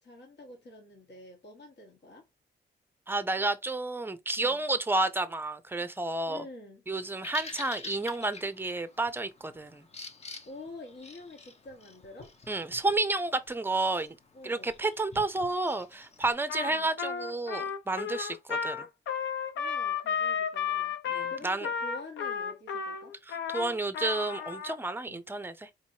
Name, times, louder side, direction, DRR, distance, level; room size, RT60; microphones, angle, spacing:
voice 1, 0.0-2.3 4.4-4.6 6.2-6.8 10.4-12.3 14.3-14.7 16.6-16.9 19.5-21.0 21.2-23.1 25.0-25.2, left 2 dB, 65° left, 1.6 m, -47 dB
voice 2, 3.1-6.4 6.9-9.8 12.5-14.2 14.4-18.8 21.1-21.7 23.3-25.7, right 2 dB, 10° right, 0.5 m, -31 dB
Bird vocalization bird call bird song, 6.9-16.3, left 3 dB, 35° left, 0.7 m, -48 dB
Trumpet, 16.5-24.8, left 7 dB, 85° left, 0.7 m, -33 dB
4.5 x 3.0 x 2.7 m
cardioid pair, 105°, 19 cm